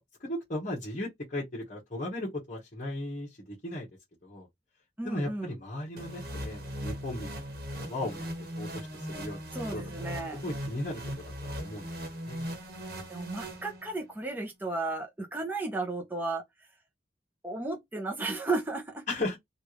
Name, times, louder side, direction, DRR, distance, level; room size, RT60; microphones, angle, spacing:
voice 1, 0.2-3.9 4.2-4.5 5.0-8.3 8.6-9.5 9.7-11.0 11.4-11.9 12.3-12.4 19.1-19.4, left 1 dB, 45° left, 1.1 m, -36 dB
voice 2, 5.0-5.5 9.5-10.4 13.1-16.4 17.4-19.0, right 2 dB, 10° right, 0.7 m, -34 dB
sound 1, 6.0-14.1, equal, 60° right, 1.2 m, -39 dB
3.3 x 2.4 x 2.9 m
head